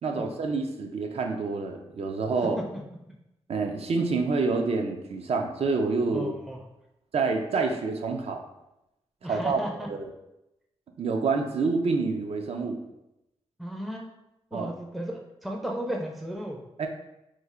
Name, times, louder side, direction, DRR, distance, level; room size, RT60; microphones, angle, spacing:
voice 1, 0.0-2.6 3.5-6.3 7.1-8.4 9.3-9.6 9.9-10.1 11.0-12.8 14.5-14.7 16.8-16.9, right 4 dB, 65° right, 4 dB, 0.4 m, -27 dB
voice 2, 6.1-6.6 9.2-9.9 13.6-14.1 14.5-16.6, equal, ahead, 1 dB, 0.4 m, -35 dB
3.1 x 2.4 x 3.5 m, 0.90 s
cardioid pair, 80°, 11 cm